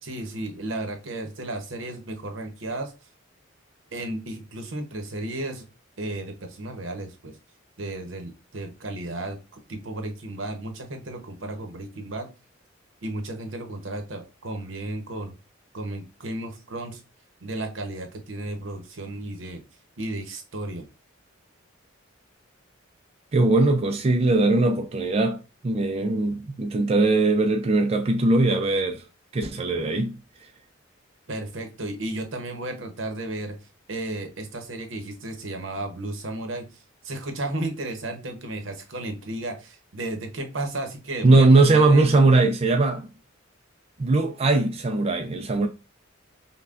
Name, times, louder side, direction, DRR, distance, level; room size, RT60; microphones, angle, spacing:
voice 1, 0.0-2.9 3.9-5.7 6.0-7.4 7.8-12.3 13.0-15.4 15.7-17.0 17.4-19.6 20.0-20.9 31.3-33.5 33.9-42.1, right 2 dB, 75° right, 0.9 m, -34 dB
voice 2, 23.3-29.0 29.3-30.2 41.2-43.1 44.0-45.7, right 2 dB, 30° right, 0.3 m, -20 dB
5.5 x 2.2 x 2.4 m
head